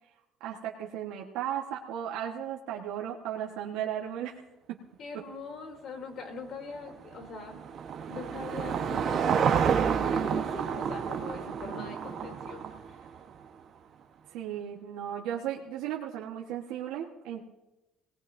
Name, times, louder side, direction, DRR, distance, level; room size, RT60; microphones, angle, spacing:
voice 1, 0.4-4.4 4.7-4.8 14.3-17.4, right 10 dB, 85° right, -1 dB, 1.3 m, -35 dB
voice 2, 5.0-7.6 8.1-12.6 12.9-13.0, left 3 dB, 45° left, 3 dB, 3.0 m, -42 dB
Car passing by / Engine, 6.8-13.3, right 7 dB, 40° right, 1.1 m, -29 dB
22.0 x 18.5 x 2.7 m, 0.99 s
cardioid pair, 155°, 0 cm